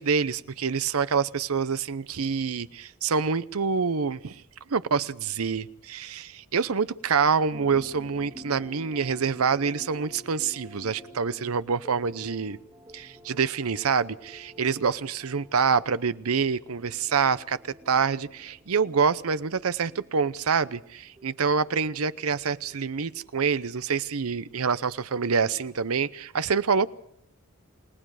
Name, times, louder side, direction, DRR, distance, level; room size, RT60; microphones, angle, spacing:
voice 1, 0.0-4.4 4.7-12.6 12.9-26.9, right 5 dB, 85° right, 0.7 m, -26 dB
sound 1, 7.5-23.9, equal, 20° right, 1.6 m, -50 dB
29.5 x 18.5 x 4.9 m
head